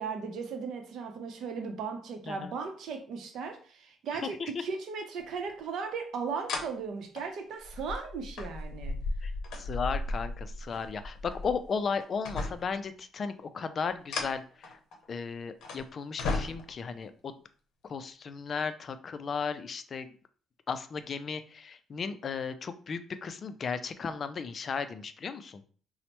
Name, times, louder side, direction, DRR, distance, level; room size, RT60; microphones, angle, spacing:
voice 1, 0.0-9.0, right 5 dB, 70° right, 5 dB, 0.6 m, -37 dB
voice 2, 4.1-4.6 9.2-14.8 15.1-17.4 17.8-20.2 20.7-25.6, left 5 dB, 40° left, 11 dB, 0.3 m, -35 dB
sound 1, 5.5-5.6 6.5-6.7 7.2-11.7 12.0-12.8 13.8-15.1 15.6-15.8 16.2-16.9 17.9-18.0, left 3 dB, 80° left, 0.6 m, -35 dB
4.2 x 2.0 x 2.9 m, 0.42 s
cardioid pair, 130°, 0 cm